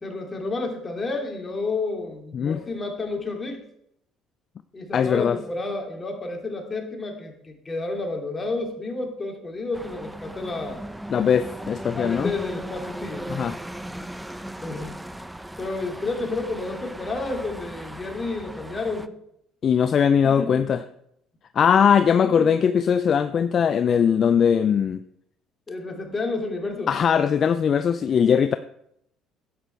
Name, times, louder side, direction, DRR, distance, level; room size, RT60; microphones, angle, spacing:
voice 1, 0.0-3.6 4.7-10.8 11.9-13.3 14.6-14.9 15.6-19.1 20.2-20.7 22.2-22.5 25.7-27.0, left 3 dB, 25° left, 2.8 m, -30 dB
voice 2, 4.9-5.4 11.1-12.3 13.3-13.6 19.6-20.8 21.5-25.0 26.9-28.6, left 7 dB, 50° left, 0.5 m, -20 dB
sound 1, 9.7-19.1, right 1 dB, 5° right, 0.6 m, -37 dB
11.0 x 8.8 x 4.5 m
supercardioid pair, 70°, 0 cm